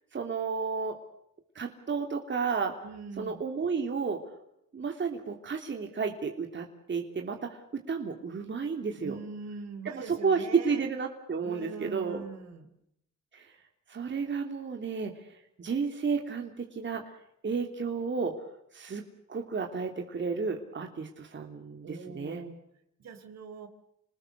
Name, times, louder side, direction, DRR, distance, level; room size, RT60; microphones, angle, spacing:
voice 1, 0.1-1.0 1.5-2.7 3.2-4.2 4.7-9.2 9.9-12.2 13.3-13.5 13.9-17.0 17.4-18.4 18.7-19.0 19.3-22.4, right 5 dB, 40° right, 3 dB, 3.1 m, -32 dB
voice 2, 2.8-3.4 9.0-10.8 11.4-12.7 21.8-22.6 23.0-23.7, right 4 dB, 60° right, 8 dB, 4.0 m, -42 dB
29.0 x 20.0 x 6.7 m, 0.77 s
cardioid pair, 90°, 30 cm